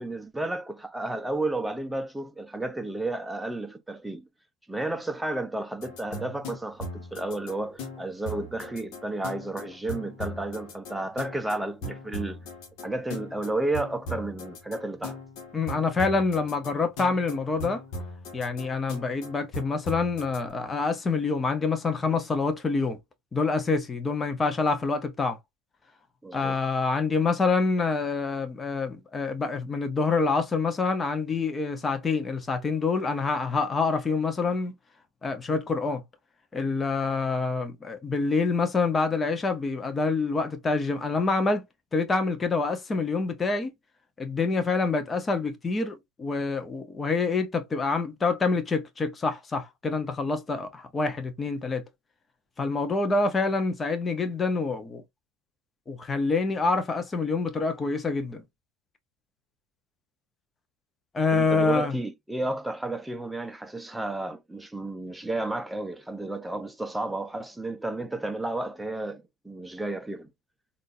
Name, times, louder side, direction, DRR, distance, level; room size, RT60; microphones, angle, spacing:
voice 1, 0.0-4.3 4.7-12.4 12.8-15.2 26.2-26.6 61.3-70.3, right 2 dB, 5° right, 0.7 m, -32 dB
sound 1, 5.8-20.4, left 1 dB, 55° left, 1.3 m, -39 dB
voice 2, 15.5-17.8 18.3-23.0 23.3-25.4 26.3-34.7 35.2-36.0 36.5-41.7 41.9-43.7 44.2-51.8 52.6-55.0 55.9-58.4 61.1-62.0, left 4 dB, 20° left, 0.9 m, -26 dB
3.8 x 2.6 x 2.6 m
hypercardioid pair, 80°, 0 cm